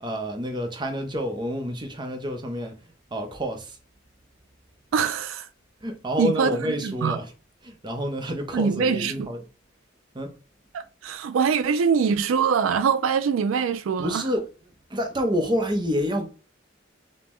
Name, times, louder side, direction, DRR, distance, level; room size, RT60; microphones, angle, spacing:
voice 1, 0.0-2.8 3.1-3.8 5.8-7.3 7.6-9.4 10.1-10.3 14.0-14.5 14.9-16.3, equal, 20° right, 0.6 m, -28 dB
voice 2, 4.9-5.5 6.2-7.2 8.5-9.3 10.7-14.2, right 6 dB, 90° right, 0.4 m, -23 dB
5.3 x 2.1 x 3.0 m
head